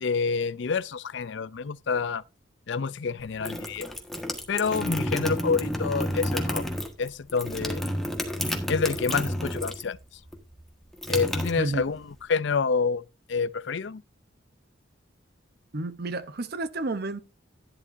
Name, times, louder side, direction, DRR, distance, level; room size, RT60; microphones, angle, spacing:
voice 1, 0.0-2.2 2.7-3.9 4.5-6.6 7.0-7.8 8.7-10.0 11.1-12.0 12.3-13.0 13.3-14.0, left 5 dB, 65° left, 0.5 m, -28 dB
sound 1, 3.2-10.0 10.3-12.1, equal, ahead, 1.5 m, -30 dB
voice 2, 15.7-17.2, right 2 dB, 50° right, 0.8 m, -31 dB
11.5 x 11.0 x 2.6 m
head